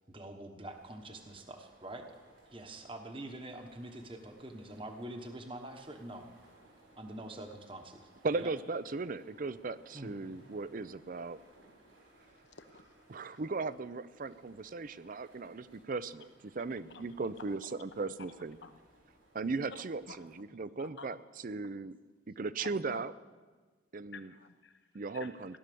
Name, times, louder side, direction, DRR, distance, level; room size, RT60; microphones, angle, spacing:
voice 1, 0.1-2.1 2.5-6.3 7.0-8.0 8.4-8.5 9.9-10.1, right 1 dB, 25° right, 5 dB, 1.1 m, -45 dB
sound 1, 0.6-20.4, right 1 dB, 85° right, 5.7 m, -63 dB
voice 2, 8.2-11.4 13.1-18.6 19.3-21.2 21.4-21.9 22.3-23.1 23.9-24.3 24.9-25.6, right 3 dB, 45° right, 16 dB, 0.5 m, -37 dB
voice 3, 12.4-13.1 13.3-13.4 16.9-17.1 17.5-17.6 17.9-18.1 18.6-18.8 19.7-19.8 20.1-20.2 20.5-21.2 22.6-23.0 24.1-24.9 25.1-25.6, left 4 dB, 65° left, 9 dB, 1.0 m, -51 dB
16.5 x 11.5 x 6.9 m, 1.4 s
head